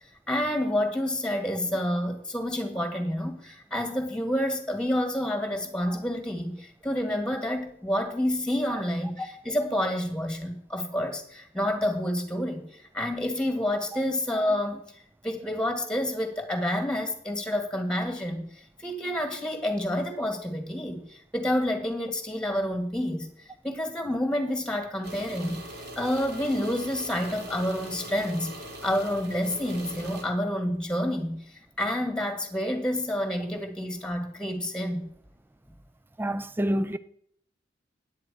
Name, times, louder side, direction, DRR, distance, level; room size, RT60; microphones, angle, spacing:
voice 1, 0.3-14.8 15.2-18.5 18.8-23.3 23.6-25.6 25.9-28.5 28.8-31.4 31.8-35.1, left 1 dB, 5° left, 1.8 m, -29 dB
sound 1, 25.0-30.2, equal, 65° right, 2.6 m, -41 dB
voice 2, 36.2-37.0, equal, 10° right, 0.4 m, -27 dB
10.0 x 8.7 x 4.7 m
head